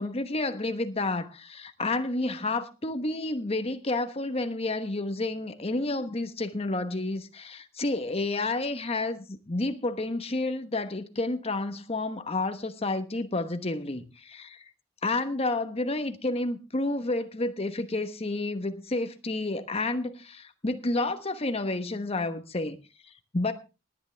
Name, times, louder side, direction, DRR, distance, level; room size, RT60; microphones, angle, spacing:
voice 1, 0.0-14.6 15.0-22.8 23.3-23.5, left 2 dB, 35° left, 1.1 m, -30 dB
19.0 x 10.0 x 3.4 m
head